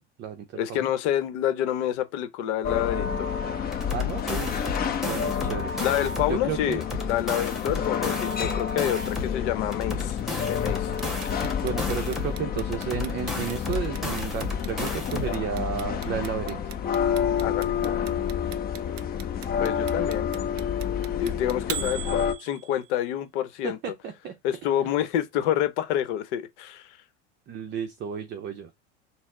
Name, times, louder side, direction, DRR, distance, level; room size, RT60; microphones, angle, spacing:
voice 1, 0.0-0.9 3.9-4.7 5.0-5.7 6.3-6.8 11.6-16.6 23.6-24.4 27.5-28.7, right 8 dB, 30° right, 0.6 m, -32 dB
voice 2, 0.6-3.4 5.8-10.9 17.4-17.7 19.6-20.3 21.2-23.8 24.4-27.0, left 11 dB, 65° left, 0.8 m, -28 dB
sound 1, 2.6-22.3, left 8 dB, 25° left, 0.7 m, -29 dB
sound 2, 3.7-6.4 6.7-9.4 9.7-12.4 12.7-15.4, left 3 dB, ahead, 1.3 m, -33 dB
Clock, 11.0-23.0, right 12 dB, 90° right, 0.6 m, -39 dB
4.2 x 2.1 x 3.6 m
supercardioid pair, 110°, 36 cm